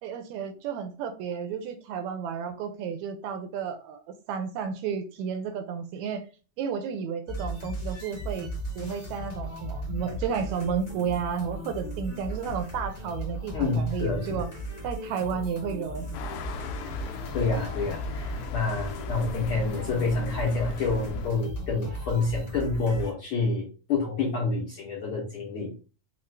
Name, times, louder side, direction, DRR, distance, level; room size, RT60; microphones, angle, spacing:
voice 1, 0.0-4.0 4.3-6.2 6.6-8.5 8.7-14.5 14.8-16.1, right 7 dB, 80° right, 8 dB, 1.8 m, -32 dB
sound 1, 7.3-23.1, equal, 35° left, 0.6 m, -36 dB
voice 2, 13.5-14.4 17.3-25.7, left 4 dB, 70° left, -3 dB, 1.3 m, -28 dB
sound 2, 16.1-21.3, left 5 dB, 85° left, 1.4 m, -38 dB
5.1 x 2.4 x 3.2 m, 0.35 s
omnidirectional pair, 3.4 m